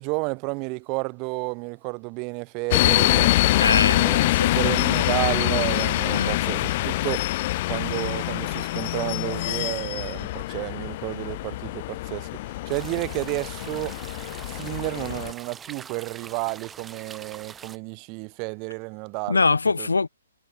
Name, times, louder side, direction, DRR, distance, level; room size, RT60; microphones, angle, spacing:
voice 1, 0.0-3.3 3.9-4.2 4.5-7.3 7.7-12.3 12.6-14.0 14.4-19.4 19.8-19.9, right 32 dB, 30° right, 3.1 m, -31 dB
sound 1, 2.7-15.3, left 17 dB, 40° left, 1.9 m, -25 dB
voice 2, 3.6-4.6 6.1-6.4 19.3-20.1, left 4 dB, 85° left, 1.8 m, -23 dB
sound 2, 12.7-17.8, right 7 dB, 10° right, 6.5 m, -43 dB
hypercardioid pair, 135°, 0 cm